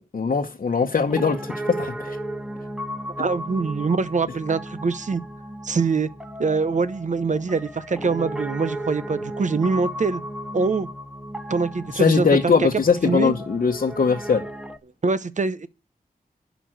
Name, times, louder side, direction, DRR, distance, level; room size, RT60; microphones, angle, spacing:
voice 1, 0.1-2.2 11.9-14.4, left 5 dB, 65° left, 1.0 m, -21 dB
Piano, 1.1-14.8, right 1 dB, 5° right, 1.0 m, -35 dB
voice 2, 3.2-5.2 5.6-6.1 6.4-10.2 10.5-10.9 11.5-12.7 13.0-13.3 15.0-15.7, right 4 dB, 55° right, 0.8 m, -24 dB
11.0 x 5.2 x 7.6 m
wide cardioid pair, 75°, 15 cm